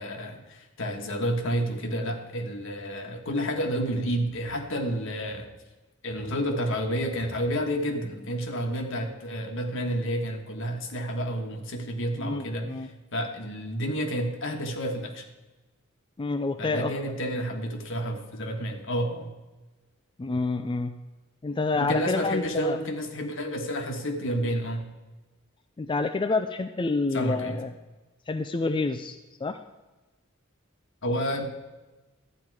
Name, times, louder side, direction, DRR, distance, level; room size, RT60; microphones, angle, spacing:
voice 1, 0.0-5.5 6.0-15.3 16.6-19.3 21.8-24.9 27.1-27.6 31.0-31.4, equal, 70° left, 4 dB, 1.4 m, -30 dB
voice 2, 12.2-12.9 16.2-16.9 20.2-21.0 21.4-22.8 25.8-27.7 28.3-29.6, left 3 dB, 25° left, 8 dB, 0.4 m, -28 dB
12.0 x 9.1 x 4.7 m, 1.2 s
head